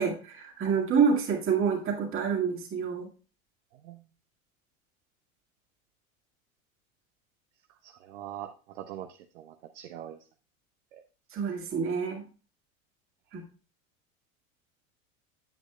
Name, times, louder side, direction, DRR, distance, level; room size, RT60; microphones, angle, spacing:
voice 1, 0.0-3.1 11.3-12.2 13.3-13.4, right 6 dB, 30° right, 1 dB, 2.0 m, -27 dB
voice 2, 7.8-10.2 10.9-11.0, right 11 dB, 55° right, 6 dB, 0.7 m, -43 dB
8.8 x 7.8 x 2.2 m, 0.34 s
figure-of-eight pair, 80°, 41 cm